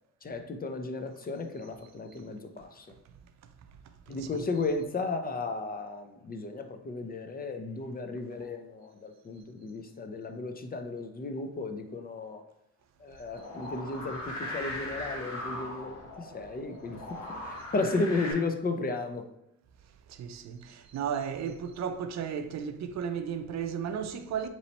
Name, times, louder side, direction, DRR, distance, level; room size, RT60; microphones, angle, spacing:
voice 1, 0.2-2.9 4.1-12.4 13.0-17.0 17.4-19.2, left 3 dB, 30° left, 0.6 m, -34 dB
voice 2, 4.1-4.4 20.1-24.5, right 7 dB, 65° right, 0.5 m, -34 dB
sound 1, 13.3-18.3, left 1 dB, 65° left, 1.5 m, -39 dB
4.1 x 3.0 x 4.2 m
cardioid pair, 90°, 30 cm